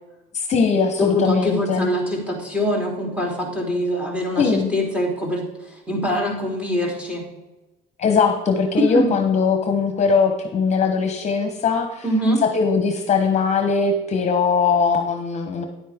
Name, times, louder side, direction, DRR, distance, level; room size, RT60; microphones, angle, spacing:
voice 1, 0.3-1.9 4.4-4.7 8.0-12.0 12.4-15.6, left 5 dB, 40° left, 5 dB, 1.0 m, -20 dB
voice 2, 1.0-7.2 8.8-9.1 12.0-12.4, left 1 dB, 5° right, -1 dB, 3.2 m, -23 dB
10.0 x 8.4 x 3.6 m, 1.0 s
cardioid pair, 110°, 17 cm